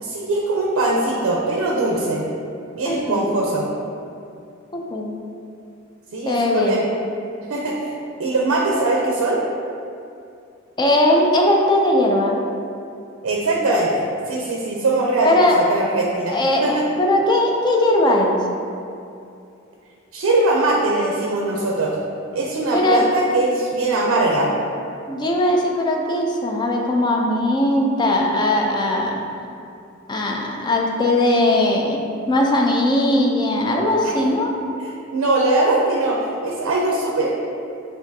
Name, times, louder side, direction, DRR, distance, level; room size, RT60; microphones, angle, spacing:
voice 1, 0.0-2.2 2.7-3.7 6.1-6.8 7.5-9.4 13.2-16.8 20.1-22.0 22.3-24.5 34.0-34.1 34.8-37.3, right 2 dB, 90° right, -2 dB, 0.5 m, -21 dB
voice 2, 2.8-3.3 4.7-5.2 6.3-6.9 10.8-12.4 15.2-15.6 16.3-18.4 22.7-23.0 25.1-29.2 30.1-34.6, left 1 dB, 20° left, 0 dB, 0.4 m, -19 dB
6.1 x 2.6 x 2.7 m, 2.5 s
head